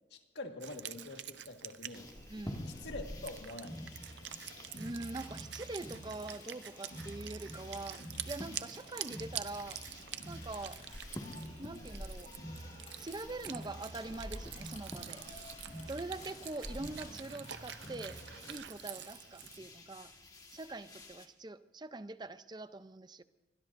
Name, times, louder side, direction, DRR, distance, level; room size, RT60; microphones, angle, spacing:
voice 1, 0.1-2.1 2.7-3.9, left 2 dB, 70° left, 4 dB, 1.7 m, -45 dB
Wind instrument woodwind instrument, 0.6-19.6, right 12 dB, 75° right, 0.6 m, -47 dB
sound 1, 1.9-21.3, left 1 dB, 20° left, 1.7 m, -50 dB
voice 2, 2.3-2.7 4.4-9.8 10.3-10.8 11.6-12.3 12.9-15.2 15.9-18.2 18.5-20.1 20.5-23.2, right 2 dB, 25° right, 12 dB, 0.6 m, -44 dB
Crowd, 2.5-18.5, equal, 45° left, 5.6 m, -49 dB
25.5 x 21.0 x 2.6 m, 1.2 s
head